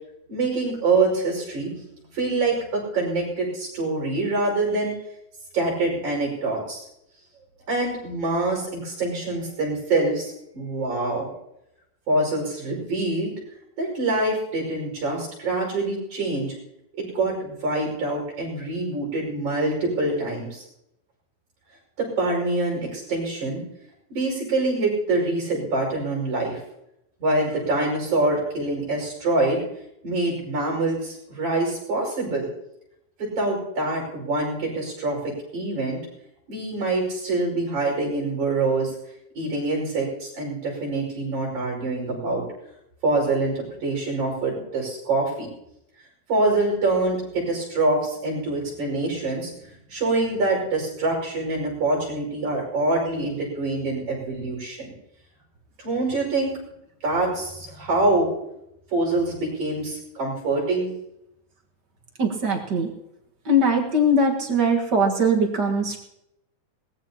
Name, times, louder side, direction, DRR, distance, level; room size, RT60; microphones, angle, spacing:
voice 1, 0.3-1.8 2.1-5.0 5.5-6.8 7.7-11.3 12.1-13.3 13.8-16.5 17.0-20.6 22.0-23.6 24.1-26.6 27.2-29.6 30.0-32.5 33.2-36.0 36.5-38.9 39.3-42.4 43.0-45.5 46.3-49.5 49.9-54.9 55.8-56.5 57.0-58.3 58.9-60.9, right 2 dB, 90° right, -2 dB, 6.9 m, -25 dB
voice 2, 62.2-62.9 63.5-66.0, equal, 40° right, 2 dB, 1.9 m, -21 dB
21.5 x 18.0 x 2.9 m, 0.83 s
omnidirectional pair, 3.3 m